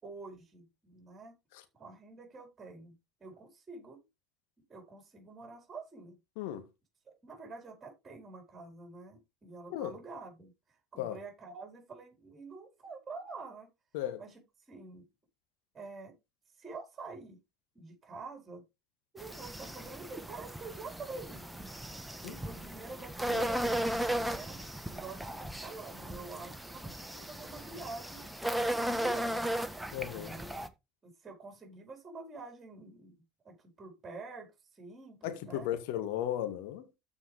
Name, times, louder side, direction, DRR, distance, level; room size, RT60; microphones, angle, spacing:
voice 1, 0.0-1.3 1.8-2.9 3.2-4.0 4.7-6.2 7.1-10.5 10.9-13.7 14.2-14.4 14.7-15.1 15.7-16.1 16.6-17.4 17.7-18.6 19.1-21.6 22.3-24.6 24.9-28.3 28.7-29.5 30.1-30.6 31.0-33.1 33.4-35.7, right 3 dB, 25° right, 4.5 m, -47 dB
sound 1, 19.2-30.7, right 1 dB, 5° right, 1.2 m, -36 dB
voice 2, 29.9-30.3 35.2-37.0, left 12 dB, 65° left, 1.9 m, -35 dB
13.5 x 5.2 x 3.4 m
hypercardioid pair, 70°, 0 cm